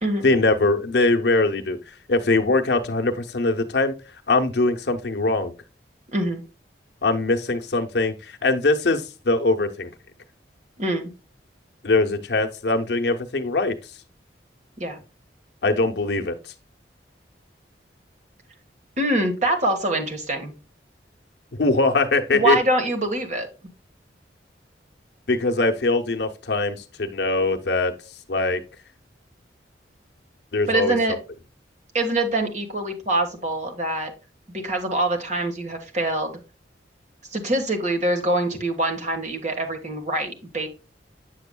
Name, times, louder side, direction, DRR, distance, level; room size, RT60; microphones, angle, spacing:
voice 1, 0.2-3.9 4.3-5.5 7.0-9.9 11.8-13.8 15.6-16.5 21.6-22.6 25.3-27.9 28.3-28.6 30.5-31.0, left 2 dB, 70° left, 0.8 m, -22 dB
voice 2, 6.1-6.4 10.8-11.1 14.8-15.0 19.0-20.5 22.3-23.5 30.7-31.2 31.9-34.1 34.5-36.4 37.3-40.7, right 2 dB, 40° right, 1.4 m, -24 dB
7.7 x 6.8 x 2.2 m
head